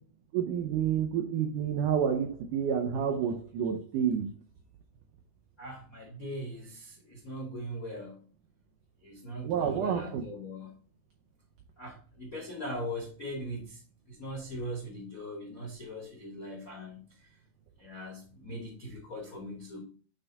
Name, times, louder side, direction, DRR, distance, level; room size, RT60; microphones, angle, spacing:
voice 1, 0.3-4.3 9.4-10.2, right 8 dB, 90° right, 3 dB, 1.8 m, -29 dB
voice 2, 5.6-8.2 9.0-10.7 11.8-13.8 14.1-17.0 17.8-19.8, equal, 60° left, -1 dB, 0.9 m, -40 dB
9.4 x 3.5 x 4.1 m, 0.39 s
omnidirectional pair, 4.8 m